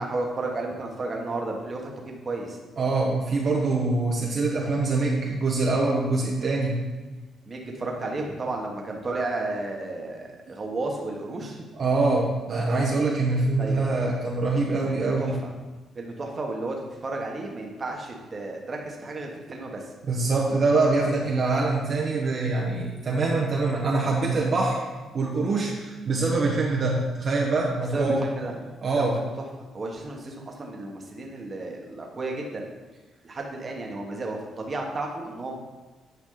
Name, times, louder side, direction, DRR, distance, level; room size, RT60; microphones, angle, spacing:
voice 1, 0.0-2.6 7.4-11.6 13.6-13.8 14.8-15.4 15.9-16.8 17.0-19.9 27.9-28.5 28.9-29.3 29.7-32.7 33.2-35.5, right 2 dB, 35° right, 0 dB, 1.5 m, -32 dB
voice 2, 2.8-6.8 11.8-15.3 20.1-24.8 25.1-28.2 28.8-29.2, right 3 dB, 50° right, -3 dB, 1.2 m, -24 dB
9.4 x 5.0 x 4.0 m, 1.2 s
cardioid pair, 90°, 0 cm